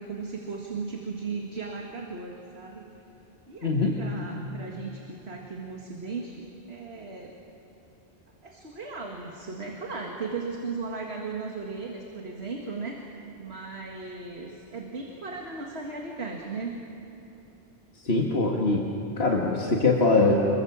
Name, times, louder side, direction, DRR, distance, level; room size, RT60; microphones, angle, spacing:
voice 1, 0.0-3.0 3.5-6.4 6.7-7.3 8.4-13.1 13.4-16.8, right 4 dB, 80° right, 0 dB, 2.2 m, -36 dB
voice 2, 3.6-4.0 18.0-18.8 19.2-20.3, left 3 dB, 75° left, -1 dB, 2.0 m, -22 dB
27.0 x 22.5 x 7.3 m, 3.0 s
omnidirectional pair, 1.1 m